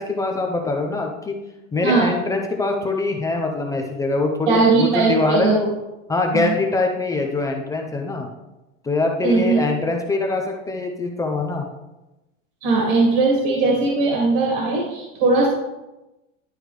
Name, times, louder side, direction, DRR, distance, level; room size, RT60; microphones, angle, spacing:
voice 1, 0.0-1.4 1.7-5.7 6.1-8.3 8.8-11.7, left 3 dB, 10° left, 1 dB, 0.4 m, -23 dB
voice 2, 1.8-2.1 4.5-5.6 6.3-6.5 9.2-9.6 12.6-15.5, right 3 dB, 60° right, -2 dB, 2.0 m, -19 dB
11.0 x 4.8 x 3.3 m, 1.0 s
supercardioid pair, 145°, 39 cm